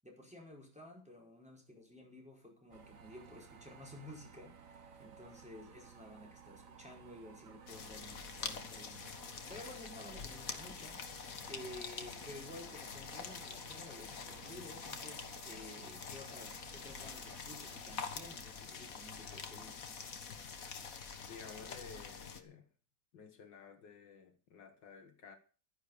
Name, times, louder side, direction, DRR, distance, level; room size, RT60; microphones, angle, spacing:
voice 1, 0.0-9.0 9.4-11.0 11.5-20.0, left 1 dB, 5° right, 5.1 m, -53 dB
sound 1, 2.7-17.9, right 7 dB, 50° right, 1.5 m, -57 dB
sound 2, 7.7-22.4, left 5 dB, 50° left, 1.8 m, -46 dB
voice 2, 21.3-22.7 23.1-25.4, left 5 dB, 70° left, 2.1 m, -53 dB
12.5 x 10.5 x 6.7 m
omnidirectional pair, 2.0 m